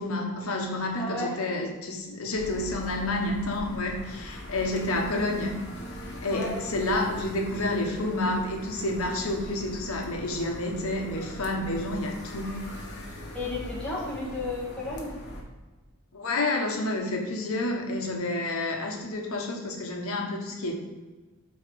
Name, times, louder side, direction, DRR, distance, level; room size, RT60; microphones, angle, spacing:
voice 1, 0.0-5.6 6.2-12.7 16.1-20.7, left 2 dB, 75° left, 2 dB, 1.1 m, -29 dB
voice 2, 1.0-1.3 6.3-6.5 13.3-15.1, left 2 dB, 5° left, -8 dB, 2.2 m, -33 dB
sound 1, 2.3-15.4, equal, 55° left, 1.2 m, -41 dB
5.6 x 4.4 x 5.0 m, 1.2 s
head